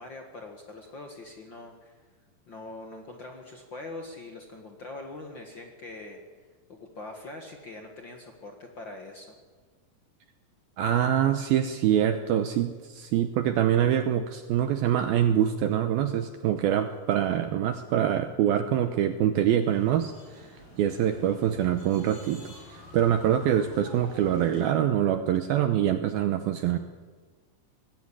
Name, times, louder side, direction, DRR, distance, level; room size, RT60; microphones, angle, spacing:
voice 1, 0.0-1.9 2.5-6.2 6.7-9.3, left 2 dB, 80° left, 3 dB, 1.0 m, -43 dB
voice 2, 10.8-20.5 20.8-26.8, right 10 dB, 75° right, 8 dB, 2.3 m, -25 dB
sound 1, 19.6-24.7, left 2 dB, 50° left, 9.2 m, -49 dB
20.0 x 16.0 x 10.0 m, 1.4 s
omnidirectional pair, 5.2 m